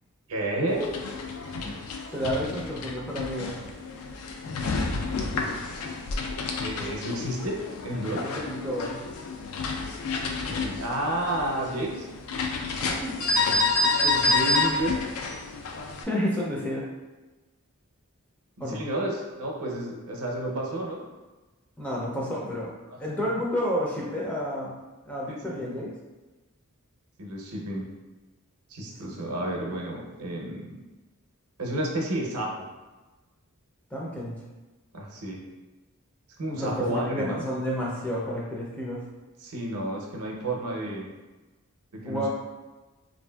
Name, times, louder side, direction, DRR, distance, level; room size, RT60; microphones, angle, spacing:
voice 1, 0.3-0.9 6.6-7.6 7.8-8.2 10.5-12.1 14.0-15.0 18.7-21.0 25.3-25.7 27.2-27.9 28.7-30.7 31.6-32.5 34.9-35.4 36.4-37.4 39.4-41.1 41.9-42.3, right 1 dB, 75° right, -1 dB, 0.6 m, -31 dB
sound 1, 0.7-16.0, left 3 dB, 70° left, 0.3 m, -29 dB
voice 2, 2.1-3.6 8.2-9.0 12.8-13.6 13.8-13.9 16.1-16.9 18.6-18.8 21.8-22.7 23.0-24.8 25.1-25.9 29.0-29.1 33.9-34.4 36.5-39.0 42.1-42.3, equal, 5° left, -5 dB, 0.4 m, -30 dB
3.1 x 2.5 x 2.2 m, 1.2 s
head